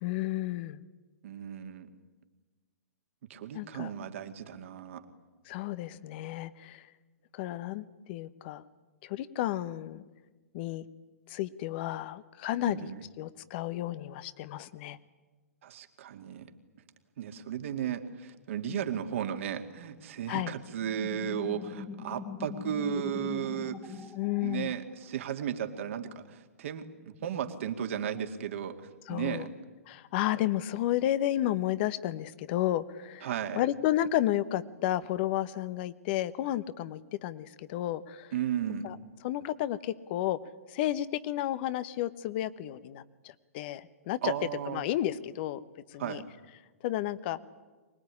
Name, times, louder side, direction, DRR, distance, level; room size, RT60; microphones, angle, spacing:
voice 1, 0.0-0.8 3.5-3.9 5.5-6.9 7.3-8.6 9.0-10.0 10.5-10.8 11.3-12.9 13.2-15.0 20.3-20.5 24.2-24.7 29.1-29.5 29.9-33.3 33.5-38.3 38.8-39.0 39.2-40.4 40.7-44.3 44.7-45.6 45.9-46.2 46.8-47.4, left 13 dB, 45° left, 16 dB, 1.2 m, -32 dB
voice 2, 1.2-1.9 3.3-5.0 12.7-13.0 15.6-16.5 17.2-24.1 24.4-28.8 29.1-29.5 33.2-33.6 38.3-38.9 44.2-44.8 46.0-46.2, right 9 dB, 55° right, 6 dB, 2.4 m, -35 dB
sound 1, 20.8-25.2, left 5 dB, 15° left, 1.4 m, -42 dB
24.0 x 20.0 x 9.9 m, 1.3 s
hypercardioid pair, 120°, 8 cm